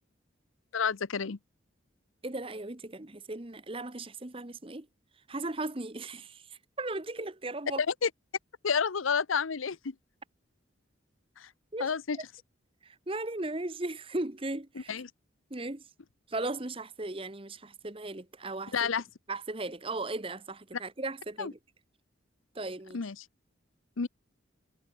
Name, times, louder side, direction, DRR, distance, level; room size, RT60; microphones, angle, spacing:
voice 1, 0.7-1.4 8.0-8.1 8.6-9.9 11.4-11.5 11.8-12.2 14.9-15.1 18.7-19.0 21.4-21.5 22.9-23.1 24.0-24.1, left 6 dB, 90° left, 0.8 m, -29 dB
voice 2, 2.2-4.9 5.3-7.8 11.7-12.2 12.8-14.9 15.5-15.9 16.3-18.9 19.3-21.6 22.5-23.0, right 2 dB, 25° right, 1.1 m, -37 dB
head